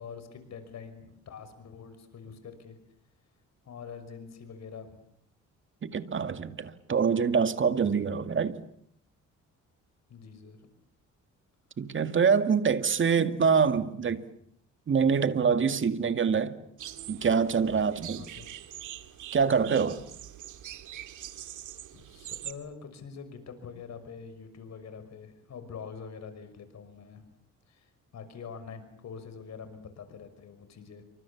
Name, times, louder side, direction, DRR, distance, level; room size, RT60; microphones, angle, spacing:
voice 1, 0.0-2.8 3.6-5.0 10.1-10.6 18.1-18.5 19.6-19.8 21.9-27.2 27.7-31.0, left 6 dB, 60° left, 6.0 m, -45 dB
voice 2, 5.8-8.6 11.8-14.2 14.9-16.5 17.1-18.2 19.3-20.0, right 6 dB, 40° right, 2.1 m, -25 dB
sound 1, 16.8-22.5, right 12 dB, 80° right, 2.3 m, -43 dB
28.0 x 25.0 x 7.2 m
cardioid pair, 90°, 30 cm